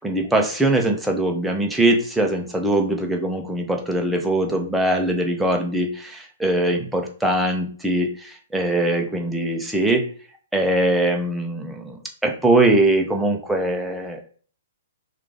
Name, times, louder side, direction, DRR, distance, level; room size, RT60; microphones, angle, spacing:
voice 1, 0.0-10.0 10.5-12.0 12.2-14.2, right 1 dB, 5° right, 1 dB, 0.6 m, -21 dB
3.1 x 2.4 x 3.7 m, 0.43 s
hypercardioid pair, 140°, 0 cm